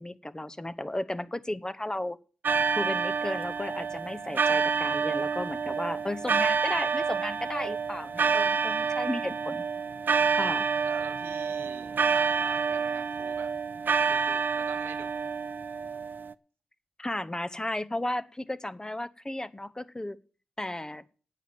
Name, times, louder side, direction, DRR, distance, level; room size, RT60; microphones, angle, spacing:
voice 1, 0.0-2.2 2.8-9.6 10.3-10.7 17.0-20.2 20.6-21.0, left 1 dB, 20° left, 0.9 m, -34 dB
sound 1, 2.4-16.3, right 5 dB, 60° right, 0.5 m, -28 dB
voice 2, 8.9-9.2 10.8-13.5 14.1-15.1, right 8 dB, 90° right, 1.0 m, -46 dB
9.2 x 7.8 x 9.2 m
cardioid pair, 45°, 4 cm